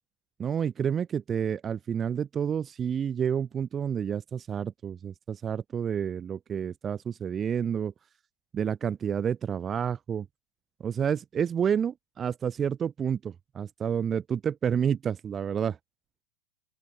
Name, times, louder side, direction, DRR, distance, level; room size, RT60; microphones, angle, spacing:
voice 1, 0.4-7.9 8.5-10.2 10.8-15.8, right 8 dB, 15° right, 1.7 m, -29 dB
open air
supercardioid pair, 175°, 0 cm